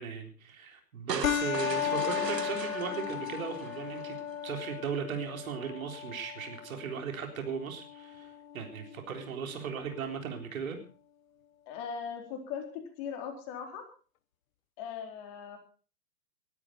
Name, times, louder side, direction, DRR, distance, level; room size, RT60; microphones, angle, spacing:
voice 1, 0.0-4.2 4.4-10.8, right 6 dB, 55° right, 4 dB, 4.0 m, -37 dB
sound 1, 1.1-4.3, right 6 dB, 70° right, 1.8 m, -39 dB
sound 2, 1.2-10.2, left 10 dB, 55° left, 1.1 m, -36 dB
voice 2, 11.7-12.7 13.0-13.8 14.8-15.6, left 7 dB, 35° left, 4 dB, 4.0 m, -39 dB
20.0 x 13.0 x 4.4 m, 0.39 s
figure-of-eight pair, 115°, 50 cm